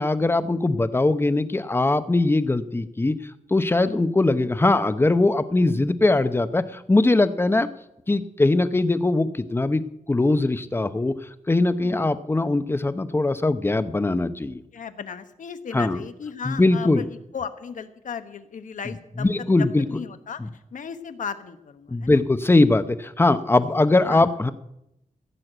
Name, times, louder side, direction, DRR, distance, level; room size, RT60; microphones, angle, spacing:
voice 1, 0.0-3.2 3.5-7.7 8.1-9.8 10.1-11.1 11.5-14.6 15.7-16.0 16.4-17.1 19.2-19.8 21.9-24.5, left 2 dB, 15° left, 12 dB, 0.7 m, -21 dB
voice 2, 11.8-12.1 14.7-17.0 17.3-19.3 19.6-20.4 20.7-22.2 23.6-24.3, left 6 dB, 70° left, 10 dB, 1.1 m, -36 dB
15.0 x 6.5 x 9.0 m, 0.83 s
wide cardioid pair, 135°, 14 cm